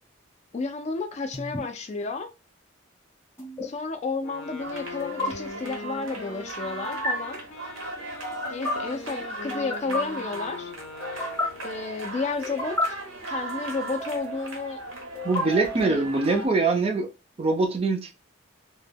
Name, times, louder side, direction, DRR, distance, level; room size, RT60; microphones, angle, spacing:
voice 1, 0.5-2.3 3.6-7.4 8.5-10.7 11.6-12.9 13.3-14.8 15.9-16.1, left 4 dB, 35° left, 0.3 m, -32 dB
sound 1, 1.3-1.6 3.4-3.7 5.0-5.3 6.8-7.1 8.2-8.7 9.5-10.0 11.0-11.5 12.4-12.9 13.9-14.5 15.2-16.0, left 2 dB, 10° left, 0.7 m, -31 dB
Wind instrument woodwind instrument, 4.2-12.1, left 3 dB, 85° left, 0.6 m, -41 dB
sound 2, 4.6-16.5, right 2 dB, 85° right, 0.8 m, -37 dB
voice 2, 15.2-17.1 17.4-18.1, right 3 dB, 30° right, 0.4 m, -23 dB
2.1 x 2.1 x 3.3 m
head